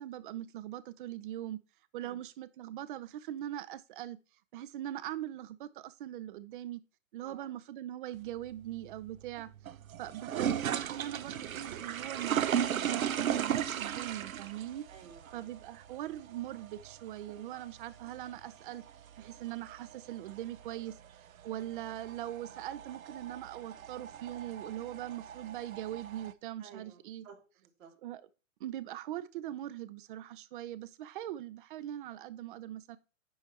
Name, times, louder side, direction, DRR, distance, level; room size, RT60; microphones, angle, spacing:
voice 1, 0.0-1.6 1.9-4.2 4.5-6.8 7.1-9.5 10.0-14.9 15.3-18.8 19.2-20.9 21.4-27.3 28.0-28.2 28.6-33.0, right 13 dB, 40° right, 0.6 m, -41 dB
voice 2, 7.2-7.5 14.9-15.4 26.6-27.9, right 6 dB, 70° right, 2.6 m, -54 dB
sound 1, 8.1-26.3, right 9 dB, 90° right, 0.7 m, -37 dB
10.5 x 3.5 x 4.2 m
hypercardioid pair, 135°, 40 cm